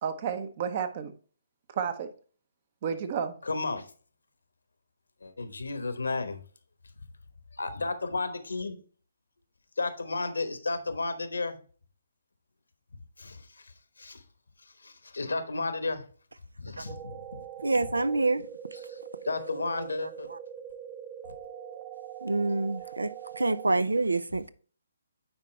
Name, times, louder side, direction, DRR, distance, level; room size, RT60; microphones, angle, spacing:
voice 1, 0.0-1.1 1.7-2.1 2.8-3.4, right 7 dB, 40° right, 0.8 m, -31 dB
voice 2, 3.4-3.9 5.2-6.4 7.6-8.8 9.8-11.6 13.2-13.7 14.0-14.2 14.6-16.0 16.6-17.4 19.2-20.3 21.2-21.3, left 3 dB, 80° left, 1.1 m, -33 dB
sound 1, 16.9-23.7, right 10 dB, 20° right, 0.4 m, -43 dB
voice 3, 17.6-18.9 20.0-20.4 22.2-24.5, right 2 dB, 85° right, 0.4 m, -28 dB
9.2 x 4.3 x 3.2 m
figure-of-eight pair, 140°, 0 cm